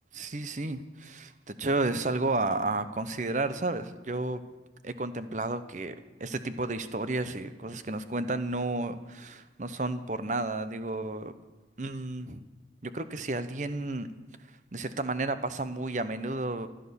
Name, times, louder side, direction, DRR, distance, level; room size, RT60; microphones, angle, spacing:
voice 1, 0.1-4.4 4.8-11.3 11.8-12.4 12.8-14.1 14.7-16.7, right 2 dB, 40° right, 12 dB, 0.9 m, -32 dB
15.5 x 11.5 x 7.0 m, 1.2 s
head